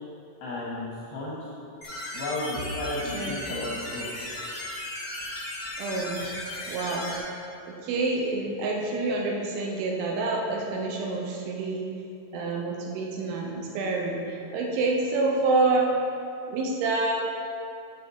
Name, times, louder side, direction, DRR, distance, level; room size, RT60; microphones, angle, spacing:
voice 1, 0.4-1.5 2.1-4.1, left 1 dB, 75° left, -6 dB, 2.4 m, -33 dB
sound 1, 1.8-7.2, left 1 dB, 45° left, 1.4 m, -36 dB
sound 2, 2.5-4.4, left 1 dB, 50° right, 2.0 m, -42 dB
voice 2, 5.8-6.2 6.7-7.1 7.7-11.9 12.3-15.9 16.5-17.1, right 3 dB, 80° right, 0 dB, 3.1 m, -27 dB
9.2 x 4.4 x 7.0 m, 2.6 s
omnidirectional pair, 5.8 m